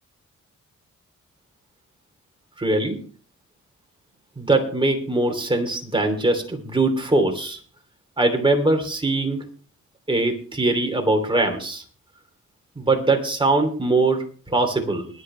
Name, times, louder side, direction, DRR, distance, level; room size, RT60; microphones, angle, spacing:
voice 1, 2.6-3.0 4.4-7.6 8.2-9.5 10.1-11.8 12.8-15.1, right 2 dB, 15° right, 4 dB, 3.0 m, -22 dB
22.0 x 8.3 x 3.3 m, 0.41 s
wide cardioid pair, 115°, 30 cm